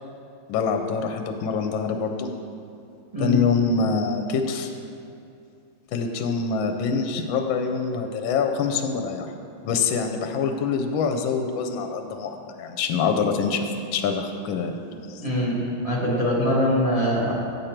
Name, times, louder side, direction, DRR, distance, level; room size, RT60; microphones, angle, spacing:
voice 1, 0.5-2.3 3.2-4.7 5.9-9.3 9.6-14.8 15.1-15.2, left 5 dB, 75° left, 5 dB, 1.3 m, -25 dB
voice 2, 15.2-15.6 15.8-17.3, equal, 20° right, -6 dB, 1.0 m, -22 dB
8.8 x 6.5 x 4.4 m, 2.5 s
omnidirectional pair, 2.3 m